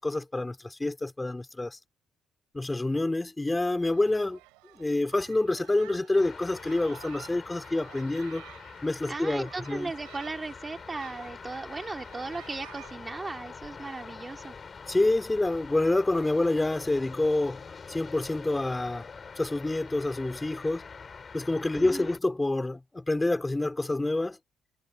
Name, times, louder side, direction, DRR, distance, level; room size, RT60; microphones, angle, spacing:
voice 1, 0.0-1.8 2.5-4.4 4.8-8.4 8.8-9.9 14.9-17.6 17.9-19.1 19.4-20.9 21.3-24.4, left 2 dB, 15° left, 4.0 m, -27 dB
sound 1, 3.8-13.0, right 25 dB, 90° right, 4.6 m, -52 dB
sound 2, 6.2-22.2, left 5 dB, 40° left, 4.1 m, -45 dB
voice 2, 9.1-14.5 21.7-22.1, right 3 dB, 25° right, 2.8 m, -37 dB
supercardioid pair, 65°, 0 cm